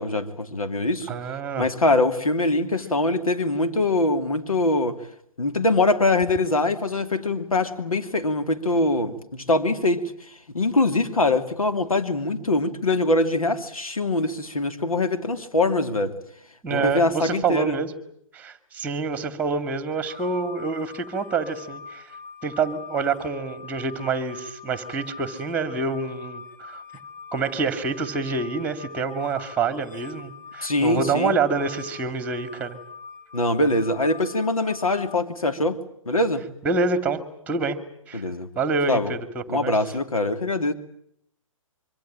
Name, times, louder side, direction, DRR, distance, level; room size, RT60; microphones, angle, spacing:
voice 1, 0.0-1.1 1.6-5.0 5.4-10.0 10.5-16.2 16.7-17.8 30.6-31.4 33.3-35.8 36.1-36.4 38.1-38.5 38.9-39.1 39.5-40.7, left 2 dB, 85° left, 8 dB, 2.8 m, -23 dB
voice 2, 1.1-1.7 16.6-17.9 18.3-22.1 22.4-26.8 27.3-32.8 36.6-37.8 38.1-38.2 38.6-39.7, right 4 dB, 10° right, 12 dB, 2.4 m, -27 dB
sound 1, 20.1-35.2, left 6 dB, 15° left, 1.3 m, -43 dB
25.5 x 24.5 x 8.9 m, 0.72 s
figure-of-eight pair, 135°, 18 cm